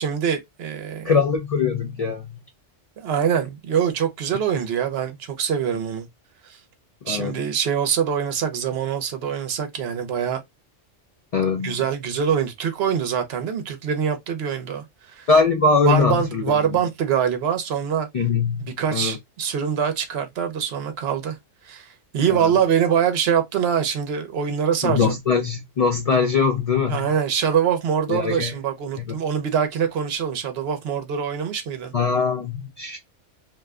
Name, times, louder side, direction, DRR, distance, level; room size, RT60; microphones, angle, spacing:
voice 1, 0.0-1.1 3.0-6.1 6.5-6.6 7.1-10.4 11.6-15.3 15.8-18.1 18.6-21.4 21.6-25.1 26.9-31.9, right 8 dB, 60° right, 0.9 m, -24 dB
voice 2, 1.0-2.3 7.0-7.4 11.3-11.8 15.3-16.5 18.1-19.2 22.3-22.5 24.8-27.1 28.1-28.5 29.0-29.1 31.9-33.0, left 5 dB, 65° left, 0.3 m, -22 dB
2.6 x 2.1 x 3.5 m
omnidirectional pair, 1.3 m